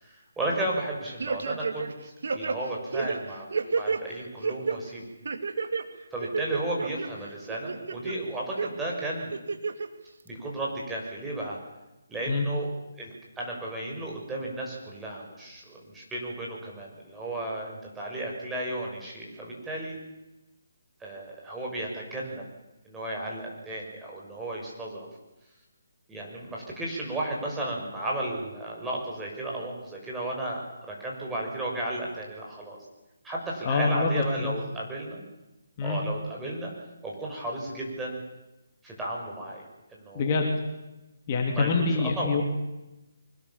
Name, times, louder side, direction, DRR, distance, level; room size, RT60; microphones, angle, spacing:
voice 1, 0.0-3.5 3.7-5.1 6.1-9.3 10.2-11.6 12.1-12.7 13.0-20.0 21.0-22.4 22.8-25.1 26.1-32.8 33.2-35.2 35.8-36.7 37.0-38.2 38.8-39.6 39.9-40.3 41.4-42.4, right 1 dB, 10° right, -3 dB, 6.3 m, -34 dB
sound 1, 1.2-1.9 2.2-4.0 4.4-4.8 5.2-5.8 6.2-7.1 7.5-8.1 8.6-8.7 9.3-9.9 10.3-10.4, right 4 dB, 65° right, 2.5 m, -30 dB
voice 2, 33.6-34.1 34.4-34.5 35.8-36.0 40.1-40.5 41.3-42.4, left 4 dB, 30° left, 1 dB, 3.3 m, -25 dB
24.5 x 20.5 x 7.4 m, 1.0 s
figure-of-eight pair, 155°, 0 cm